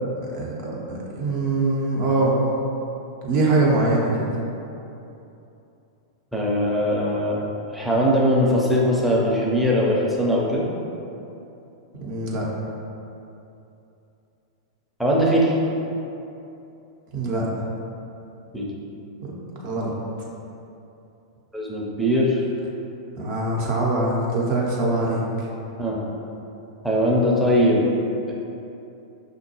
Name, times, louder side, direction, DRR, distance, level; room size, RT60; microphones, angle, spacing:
voice 1, 0.2-2.3 3.2-4.3 11.9-12.4 17.1-17.4 19.2-19.3 19.6-19.9 23.2-25.2, right 2 dB, 40° right, -4 dB, 0.7 m, -23 dB
voice 2, 6.3-7.4 7.7-10.7 15.0-15.5 18.5-18.7 21.5-22.4 25.8-26.0 26.8-27.8 28.3-28.4, equal, ahead, -5 dB, 0.6 m, -20 dB
5.4 x 2.2 x 2.9 m, 2.8 s
figure-of-eight pair, 95°, 2 cm